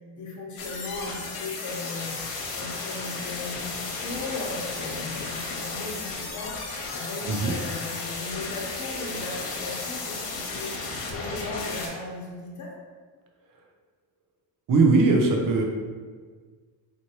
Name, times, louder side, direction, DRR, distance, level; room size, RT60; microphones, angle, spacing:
voice 1, 0.1-2.1 2.5-10.7 11.0-12.7 15.5-15.6, left 3 dB, 35° left, -3 dB, 1.2 m, -37 dB
sound 1, 0.6-11.9, left 3 dB, 85° left, 1.0 m, -34 dB
voice 2, 7.2-7.5 14.7-15.6, right 3 dB, 40° right, 2 dB, 0.8 m, -20 dB
4.2 x 3.1 x 3.0 m, 1.5 s
supercardioid pair, 90°, 49 cm